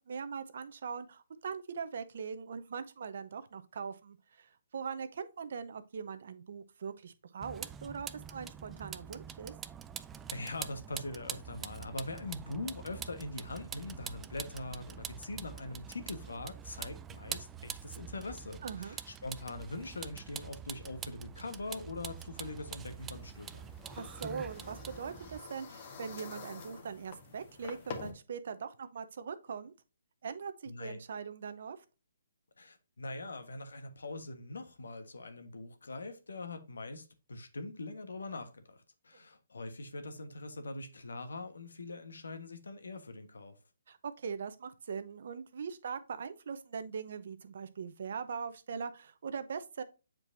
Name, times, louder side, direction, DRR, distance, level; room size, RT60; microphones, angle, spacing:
voice 1, 0.0-9.5 18.6-19.0 24.0-29.7 30.2-31.8 43.9-49.8, right 6 dB, 60° right, 0.8 m, -41 dB
Vehicle, 7.4-25.4, right 8 dB, 15° right, 0.3 m, -45 dB
voice 2, 10.3-23.7 30.7-31.0 32.6-43.6, left 2 dB, 85° left, 1.3 m, -42 dB
sound 1, 22.8-28.1, left 5 dB, 40° left, 1.8 m, -48 dB
7.8 x 4.6 x 2.7 m
hypercardioid pair, 150°, 0 cm